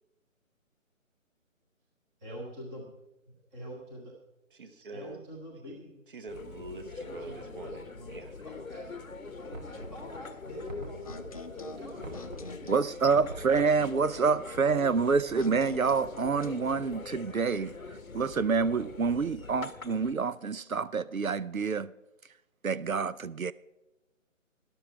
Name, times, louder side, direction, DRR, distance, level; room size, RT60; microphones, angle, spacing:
voice 1, 2.2-2.9 3.5-4.1 4.9-6.0 7.1-8.2 8.4-9.0 9.4-12.3 13.8-14.3, equal, 5° right, 0.8 m, -45 dB
voice 2, 4.5-5.3 6.1-8.4, right 2 dB, 40° right, 1.3 m, -45 dB
sound 1, 6.3-20.1, left 3 dB, 85° left, 1.1 m, -43 dB
Knock, 9.5-10.2 10.7-11.4 12.0-12.6 13.1-13.9, right 1 dB, 70° right, 2.7 m, -44 dB
sound 2, 11.0-13.0 15.3-17.0, left 3 dB, 25° left, 0.7 m, -46 dB
voice 3, 12.6-17.7 18.1-21.9 22.6-23.5, right 5 dB, 90° right, 0.7 m, -27 dB
12.5 x 11.5 x 4.6 m
figure-of-eight pair, 145°, 40 cm